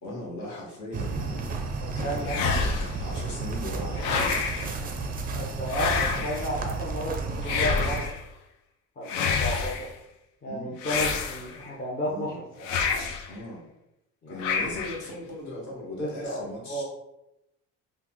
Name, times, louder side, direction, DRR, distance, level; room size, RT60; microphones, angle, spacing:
voice 1, 0.0-1.5 1.9-2.6 3.0-4.4 6.1-6.3 10.4-10.8 12.0-12.4 13.3-13.7 14.3-16.8, left 1 dB, 60° left, -4 dB, 1.3 m, -38 dB
sound 1, 0.9-8.1, right 3 dB, 25° right, 0.4 m, -32 dB
voice 2, 1.8-2.6 5.3-8.2 9.0-9.9 10.4-12.7 14.2-14.8 15.9-16.8, equal, 30° left, -4 dB, 0.6 m, -33 dB
sound 2, 2.3-3.1 4.0-4.7 5.7-6.5 7.4-8.2 9.1-9.9 10.8-11.7 12.6-13.3 14.4-15.1, left 5 dB, 90° left, 0.5 m, -28 dB
3.1 x 2.1 x 3.5 m, 0.88 s
cardioid pair, 115°, 33 cm